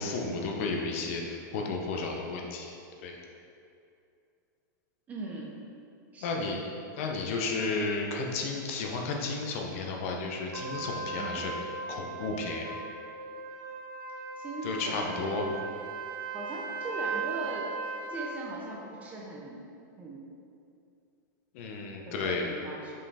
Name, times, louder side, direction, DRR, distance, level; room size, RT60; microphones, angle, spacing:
voice 1, 0.0-2.7 3.0-3.2 6.2-6.6 7.0-11.5 11.9-12.7 14.6-15.5 21.5-22.4, left 3 dB, 40° left, 1 dB, 0.8 m, -33 dB
voice 2, 5.1-5.5 6.1-6.4 11.2-11.4 14.4-15.5 16.3-17.7 18.1-19.6 20.0-20.2 22.0-23.0, right 2 dB, 15° right, -2 dB, 0.6 m, -39 dB
Trumpet, 10.5-18.4, right 4 dB, 75° right, 0.8 m, -38 dB
5.5 x 5.5 x 4.2 m, 2.5 s
supercardioid pair, 175°, 11 cm